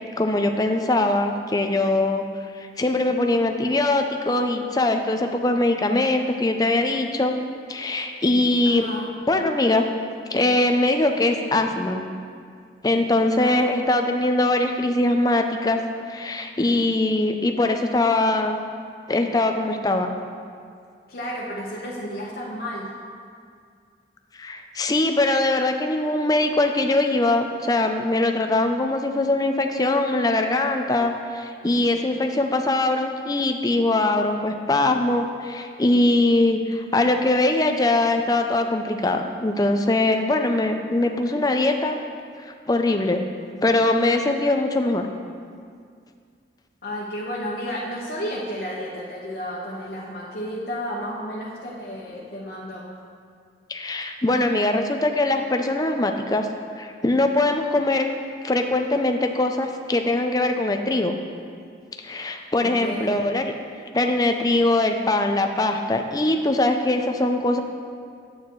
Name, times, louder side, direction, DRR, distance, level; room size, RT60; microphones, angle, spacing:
voice 1, 0.2-2.2 2.6-7.3 7.7-8.9 9.3-9.9 10.3-12.0 12.8-15.8 16.1-18.6 19.1-20.1 24.3-42.0 42.5-43.2 43.6-45.1 53.7-56.5 56.8-58.1 58.4-61.1 62.0-63.5 63.9-67.6, left 2 dB, 20° left, 5 dB, 0.5 m, -22 dB
voice 2, 8.6-9.1 13.4-13.6 21.1-22.9 46.8-52.8 62.6-63.1, equal, 55° left, -8 dB, 1.2 m, -32 dB
10.5 x 8.5 x 3.1 m, 2.2 s
head